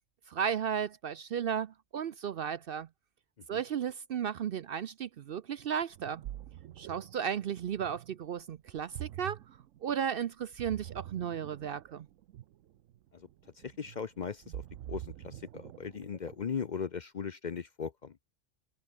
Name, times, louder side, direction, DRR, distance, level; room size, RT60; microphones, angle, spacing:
voice 1, 0.3-2.9 3.5-6.2 6.8-9.4 9.8-12.1, right 8 dB, 60° right, 0.7 m, -34 dB
Ocean, 5.8-16.6, right 12 dB, 90° right, 1.0 m, -46 dB
voice 2, 13.1-18.2, left 6 dB, 45° left, 0.7 m, -39 dB
omnidirectional pair, 1.3 m